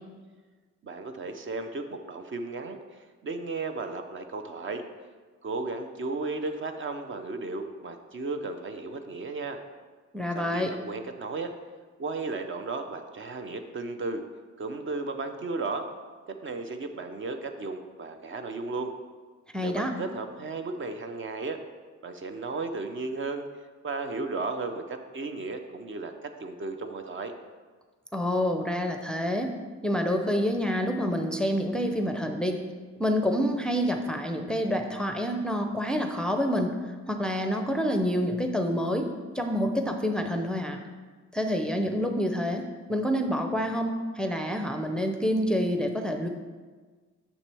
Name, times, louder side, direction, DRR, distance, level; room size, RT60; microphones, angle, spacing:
voice 1, 0.8-4.8 5.4-9.6 10.3-11.5 12.0-14.2 14.6-15.9 16.3-18.9 19.6-21.6 22.0-23.4 23.8-27.3, right 3 dB, 40° right, 6 dB, 0.6 m, -34 dB
voice 2, 10.1-10.7 19.5-19.9 28.1-29.6 29.8-32.6 33.0-36.8 37.1-40.8 41.3-42.6 42.9-46.3, equal, 5° left, 4 dB, 0.5 m, -27 dB
7.1 x 6.2 x 3.4 m, 1.4 s
cardioid pair, 90°, 30 cm